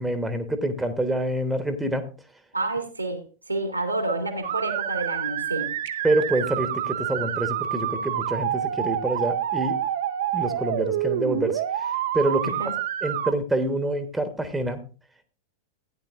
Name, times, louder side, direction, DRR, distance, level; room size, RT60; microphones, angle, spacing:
voice 1, 0.0-2.0 6.0-9.8 10.3-11.6 12.1-12.5 13.0-14.8, right 1 dB, 5° right, 9 dB, 1.1 m, -26 dB
voice 2, 2.5-5.7 12.4-12.7, right 2 dB, 85° right, 5 dB, 2.0 m, -29 dB
sound 1, 4.4-13.3, right 11 dB, 60° right, 0.7 m, -28 dB
15.0 x 9.9 x 2.5 m, 0.35 s
figure-of-eight pair, 90°, 0 cm